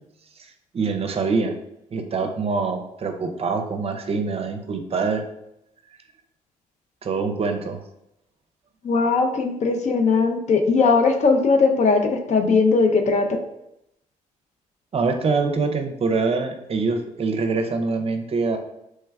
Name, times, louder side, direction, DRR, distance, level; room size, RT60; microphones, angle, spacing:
voice 1, 0.4-1.5 1.9-5.2 7.0-7.8 14.9-18.6, right 4 dB, 40° right, 6 dB, 0.5 m, -24 dB
voice 2, 8.8-13.4, left 4 dB, 50° left, 5 dB, 0.6 m, -19 dB
3.2 x 2.2 x 3.4 m, 0.83 s
supercardioid pair, 60°, 15 cm